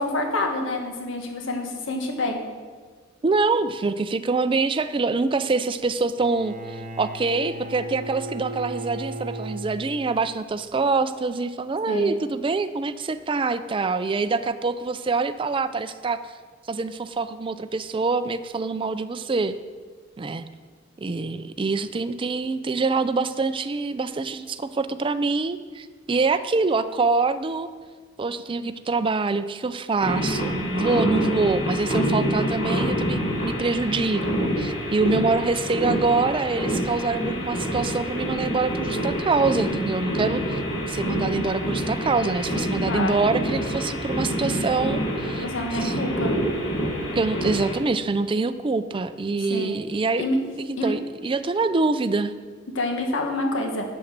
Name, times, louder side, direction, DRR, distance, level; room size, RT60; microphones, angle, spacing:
voice 1, 0.0-2.4 11.9-12.1 40.0-40.1 42.8-43.3 45.4-46.3 49.5-49.8 50.2-50.4 50.8-51.0 52.7-53.8, left 2 dB, 80° left, 2 dB, 1.6 m, -27 dB
voice 2, 3.2-16.2 16.7-19.6 20.2-20.5 21.0-27.7 28.2-40.6 40.9-45.4 45.8-45.9 47.1-50.3 50.6-52.3, right 3 dB, 25° right, 11 dB, 0.4 m, -25 dB
Bowed string instrument, 6.2-10.3, right 1 dB, 45° right, 1.0 m, -36 dB
sound 1, 30.0-47.7, equal, 50° left, 3.8 m, -27 dB
8.7 x 7.2 x 6.6 m, 1.5 s
head